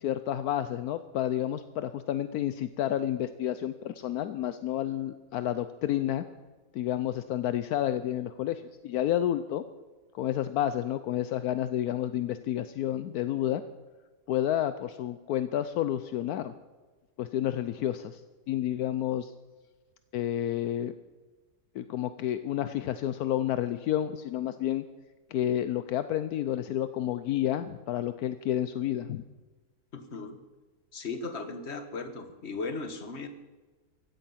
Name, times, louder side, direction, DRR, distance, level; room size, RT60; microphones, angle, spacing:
voice 1, 0.0-6.2 6.7-9.6 10.1-13.6 14.3-16.5 17.2-18.2 18.5-19.3 20.1-20.9 21.7-24.8 25.3-29.2, left 11 dB, 75° left, 12 dB, 1.1 m, -30 dB
voice 2, 29.9-30.4 30.9-33.3, left 3 dB, 45° left, 8 dB, 1.6 m, -37 dB
16.0 x 13.5 x 5.8 m, 1.3 s
omnidirectional pair, 1.7 m